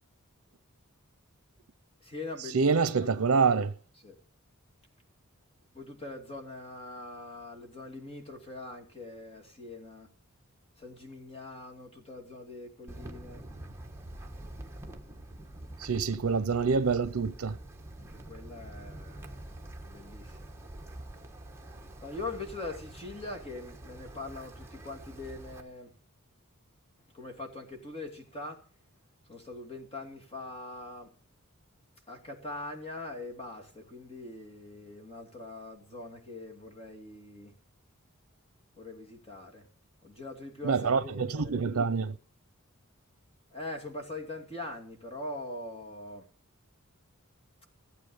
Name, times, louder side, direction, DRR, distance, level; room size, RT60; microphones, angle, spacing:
voice 1, 2.0-3.1 4.0-4.2 5.7-10.1 10.8-13.5 18.1-19.5 19.8-20.5 22.0-25.9 27.1-28.7 29.3-31.1 32.1-37.5 38.8-39.7 40.0-41.8 43.5-46.3, left 2 dB, 25° left, 2.7 m, -42 dB
voice 2, 2.5-3.7 15.8-17.6 40.6-42.2, right 5 dB, 75° right, 0.6 m, -26 dB
Wind, 12.9-25.6, right 1 dB, 10° right, 1.3 m, -46 dB
16.0 x 8.3 x 5.4 m
head